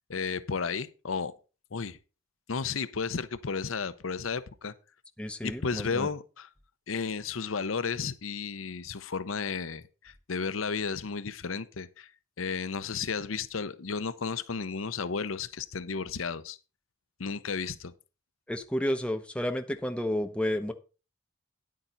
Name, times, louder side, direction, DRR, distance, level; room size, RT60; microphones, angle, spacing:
voice 1, 0.1-1.3 1.7-2.0 2.5-4.7 5.4-6.5 6.9-12.1 12.4-16.6 17.2-17.9, left 5 dB, 90° left, 0.7 m, -33 dB
voice 2, 5.2-6.1 18.5-20.7, equal, 5° left, 0.9 m, -31 dB
10.0 x 8.7 x 4.0 m
head